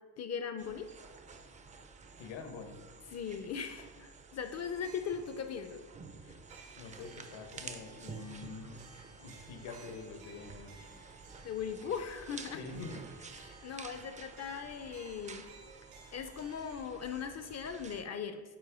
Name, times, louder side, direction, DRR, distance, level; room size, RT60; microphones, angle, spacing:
voice 1, 0.2-0.9 3.1-5.8 6.2-6.3 11.4-12.7 13.3-15.4 16.1-18.4, left 7 dB, 40° left, 9 dB, 0.4 m, -39 dB
sound 1, 0.6-18.0, right 4 dB, 20° right, 0.4 m, -51 dB
voice 2, 2.2-2.8 6.8-8.8 9.2-10.8 12.5-13.1, left 4 dB, 80° left, 5 dB, 1.1 m, -46 dB
sound 2, 4.7-16.8, right 4 dB, 75° right, 1.6 m, -60 dB
8.9 x 3.0 x 4.9 m, 1.4 s
cardioid pair, 120°, 42 cm